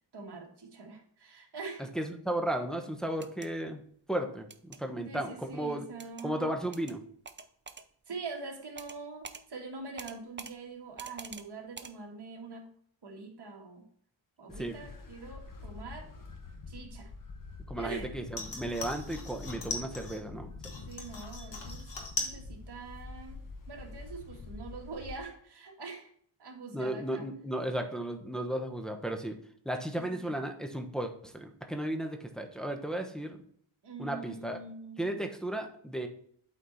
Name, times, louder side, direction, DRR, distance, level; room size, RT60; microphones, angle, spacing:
voice 1, 0.1-1.9 5.0-6.6 8.1-12.7 13.0-13.9 14.4-16.1 16.7-17.1 17.8-18.2 20.9-21.9 22.2-23.4 23.7-26.1 26.4-27.3 29.9-30.4 33.8-35.1, right 4 dB, 50° right, 1 dB, 1.9 m, -44 dB
voice 2, 2.0-3.8 4.1-5.8 6.2-7.0 14.6-14.7 17.7-20.5 26.7-29.4 29.6-33.4 34.0-34.6 35.0-36.1, right 1 dB, ahead, 3 dB, 1.0 m, -34 dB
sound 1, 3.1-3.5 4.5-4.8 6.0-6.3 6.7-7.0 7.3-7.9 8.8-9.0 9.2-9.4 10.0-10.5 11.0-11.5 11.8-11.9, right 5 dB, 25° right, 0.5 m, -45 dB
sound 2, 14.5-25.2, left 3 dB, 40° left, 1.3 m, -46 dB
sound 3, 18.3-20.2 20.6-22.4 22.7-23.3 23.7-23.8, left 4 dB, 55° left, 1.8 m, -39 dB
8.2 x 4.3 x 4.1 m, 0.62 s
cardioid pair, 75°, 50 cm